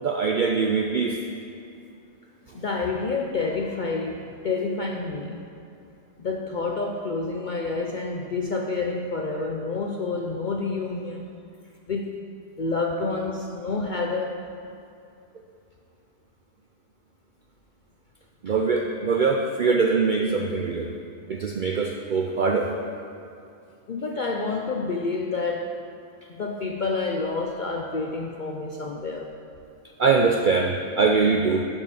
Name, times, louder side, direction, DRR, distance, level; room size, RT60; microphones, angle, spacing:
voice 1, 0.0-1.2 18.4-20.9 21.3-22.7 30.0-31.6, right 4 dB, 80° right, 2 dB, 0.4 m, -22 dB
voice 2, 2.5-5.5 6.2-11.3 11.9-12.2 12.6-14.5 23.9-25.8 26.3-29.3, left 3 dB, 70° left, 2 dB, 0.4 m, -28 dB
12.0 x 7.7 x 4.2 m, 2.6 s
omnidirectional pair, 1.6 m